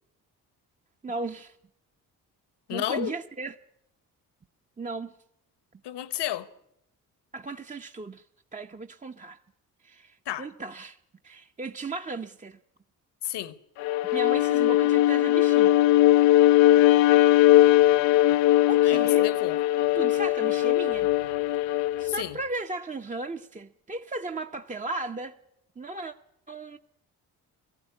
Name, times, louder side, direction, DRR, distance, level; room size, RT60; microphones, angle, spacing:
voice 1, 1.0-1.6 2.7-3.5 4.8-5.1 7.3-8.2 8.5-9.4 9.8-11.0 11.2-12.6 14.1-15.8 18.7-19.3 19.9-21.1 22.0-25.4 25.8-26.1 26.5-26.8, right 3 dB, 15° right, 0.7 m, -36 dB
voice 2, 2.7-3.2 5.8-6.5 10.3-10.5 13.2-13.6 18.8-19.6 22.1-22.4, left 13 dB, 65° left, 1.2 m, -31 dB
Bowed string instrument, 13.8-22.2, left 14 dB, 85° left, 0.7 m, -20 dB
18.5 x 14.5 x 9.9 m
hypercardioid pair, 50°, 44 cm